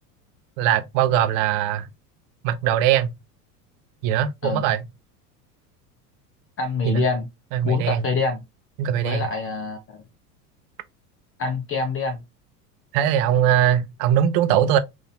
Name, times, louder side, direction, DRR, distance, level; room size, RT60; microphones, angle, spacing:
voice 1, 0.6-1.9 2.4-3.1 4.0-4.8 6.8-7.0 7.5-8.1 8.8-9.3 12.9-14.8, right 10 dB, 55° right, 0.7 m, -21 dB
voice 2, 6.6-7.3 7.6-8.4 9.0-10.0 11.4-12.2, left 4 dB, 25° left, 0.7 m, -25 dB
3.9 x 2.7 x 2.7 m
hypercardioid pair, 85°, 49 cm